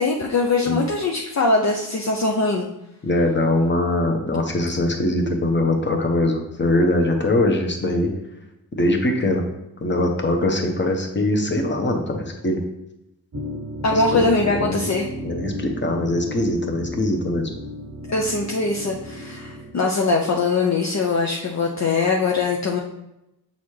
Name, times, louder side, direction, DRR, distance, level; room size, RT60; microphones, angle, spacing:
voice 1, 0.0-2.6 13.8-15.1 18.1-22.8, left 3 dB, 45° left, 0 dB, 0.7 m, -21 dB
voice 2, 3.0-8.1 8.7-9.4 9.8-12.6 13.9-14.8 15.2-17.5, left 1 dB, 30° left, 2 dB, 1.0 m, -22 dB
sound 1, 13.3-19.7, equal, 45° right, 0.8 m, -34 dB
7.1 x 4.1 x 3.3 m, 0.87 s
cardioid pair, 80°, 39 cm